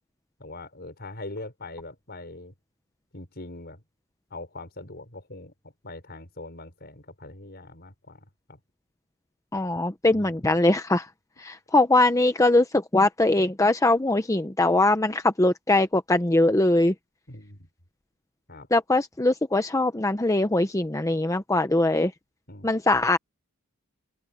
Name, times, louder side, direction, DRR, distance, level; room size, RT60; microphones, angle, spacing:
voice 1, 0.4-2.5 3.1-3.8 4.3-8.6 10.1-10.3 17.3-17.7 18.5-18.7 22.5-22.7, left 2 dB, 50° left, 5.8 m, -42 dB
voice 2, 9.5-11.1 11.4-16.9 18.7-22.1 22.6-23.2, left 2 dB, 15° left, 0.8 m, -22 dB
open air
head